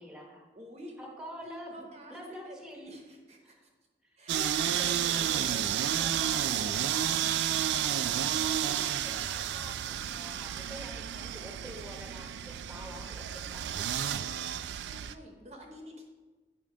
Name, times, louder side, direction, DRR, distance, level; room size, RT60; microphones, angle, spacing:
voice 1, 0.0-0.4 1.0-3.0 3.4-3.7 4.0-5.6 6.0-7.3 7.9-13.9, equal, 5° right, -1 dB, 0.9 m, -47 dB
voice 2, 0.6-1.0 1.4-2.2 2.4-3.5 4.2-4.8 14.5-16.0, equal, 40° right, 2 dB, 0.8 m, -50 dB
sound 1, 4.3-15.1, right 10 dB, 80° right, 0.3 m, -31 dB
8.6 x 3.8 x 4.9 m, 1.3 s
head